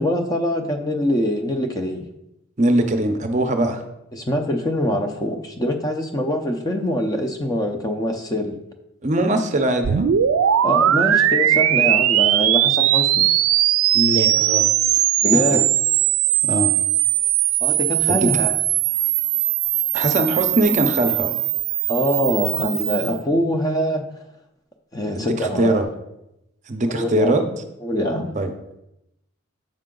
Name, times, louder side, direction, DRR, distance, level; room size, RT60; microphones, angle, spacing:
voice 1, 0.0-2.1 4.1-8.6 10.6-13.3 15.2-15.6 17.6-18.6 21.9-24.0 24.9-25.8 26.9-27.4 27.8-28.3, equal, 15° left, 5 dB, 0.5 m, -23 dB
voice 2, 2.6-3.8 9.0-10.1 13.9-14.7 14.9-15.0 15.3-15.6 16.5-16.7 18.1-18.3 19.9-21.4 25.2-25.9 26.7-27.4 28.4-28.5, right 1 dB, 35° right, 6 dB, 0.6 m, -21 dB
sound 1, 9.8-23.2, right 12 dB, 85° right, 0.4 m, -19 dB
7.5 x 5.5 x 3.8 m, 0.86 s
head